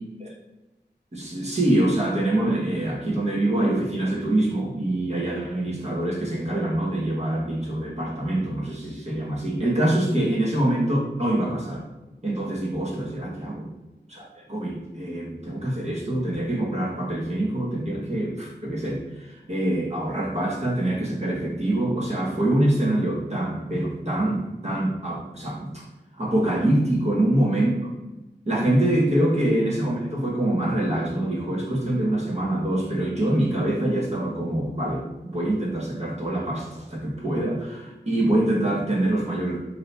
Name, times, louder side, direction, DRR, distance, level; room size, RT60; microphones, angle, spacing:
voice 1, 1.1-11.8 12.2-13.7 14.1-25.9 26.2-27.9 28.5-39.6, right 1 dB, 35° right, -3 dB, 0.9 m, -25 dB
2.8 x 2.7 x 3.2 m, 1.1 s
wide cardioid pair, 50°, 18 cm